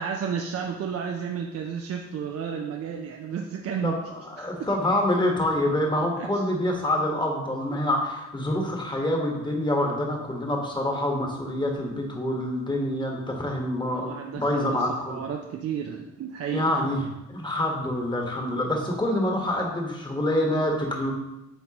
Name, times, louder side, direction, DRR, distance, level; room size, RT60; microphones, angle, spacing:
voice 1, 0.0-3.9 4.4-4.7 6.2-6.3 13.8-16.6, right 7 dB, 50° right, 2 dB, 0.6 m, -32 dB
voice 2, 3.8-15.2 16.5-21.1, left 1 dB, 15° left, 0 dB, 1.4 m, -26 dB
7.9 x 4.0 x 3.0 m, 0.94 s
cardioid pair, 90°, 30 cm